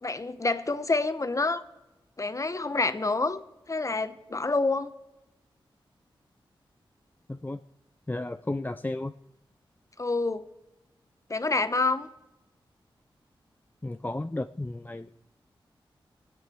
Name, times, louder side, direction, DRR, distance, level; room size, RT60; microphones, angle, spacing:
voice 1, 0.0-1.6 2.2-3.4 3.7-4.9 10.0-10.4 11.3-12.1, left 3 dB, 35° left, 11 dB, 1.1 m, -27 dB
voice 2, 7.3-7.6 8.1-9.1 13.8-15.1, left 2 dB, 20° left, 9 dB, 0.5 m, -33 dB
22.0 x 8.9 x 4.6 m, 0.96 s
cardioid pair, 55°, 9 cm